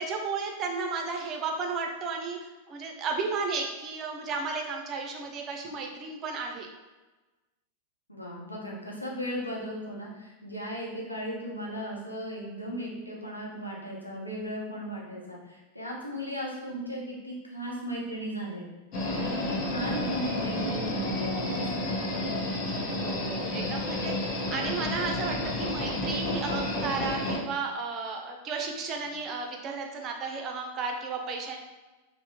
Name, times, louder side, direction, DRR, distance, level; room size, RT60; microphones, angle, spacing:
voice 1, 0.0-6.7 23.0-31.6, right 4 dB, 30° right, 2 dB, 0.5 m, -33 dB
voice 2, 8.1-18.7 19.1-22.0, equal, 85° left, -3 dB, 0.7 m, -36 dB
sound 1, 18.9-27.4, left 1 dB, 40° left, 0.8 m, -31 dB
3.3 x 2.0 x 2.9 m, 1.2 s
figure-of-eight pair, 90°, 0 cm